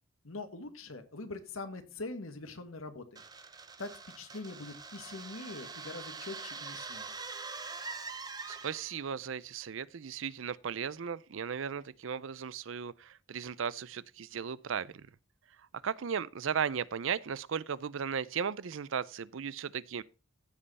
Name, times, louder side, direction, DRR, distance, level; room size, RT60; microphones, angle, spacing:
voice 1, 0.2-3.2 3.8-7.1, left 3 dB, 90° left, 1.6 m, -43 dB
sound 1, 3.2-9.1, right 4 dB, 20° right, 0.7 m, -44 dB
voice 2, 8.5-15.1 15.8-20.0, right 7 dB, 70° right, 0.5 m, -36 dB
15.0 x 5.5 x 4.1 m
head